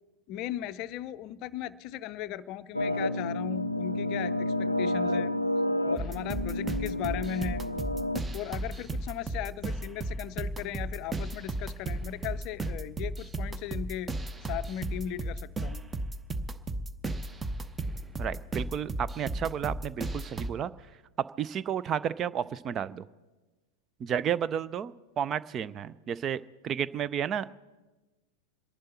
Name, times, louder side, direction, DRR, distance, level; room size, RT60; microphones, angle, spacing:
voice 1, 0.3-5.3 5.8-7.6 8.3-14.1 14.4-15.8, left 11 dB, 40° left, 15 dB, 0.5 m, -37 dB
sound 1, 2.7-8.2, left 1 dB, 90° left, 0.6 m, -30 dB
sound 2, 6.0-20.5, right 2 dB, 15° right, 0.9 m, -35 dB
voice 2, 18.2-20.7 21.4-23.1 24.0-27.6, right 8 dB, 30° right, 17 dB, 0.5 m, -32 dB
26.5 x 11.0 x 4.3 m, 1.2 s
figure-of-eight pair, 90°, 0 cm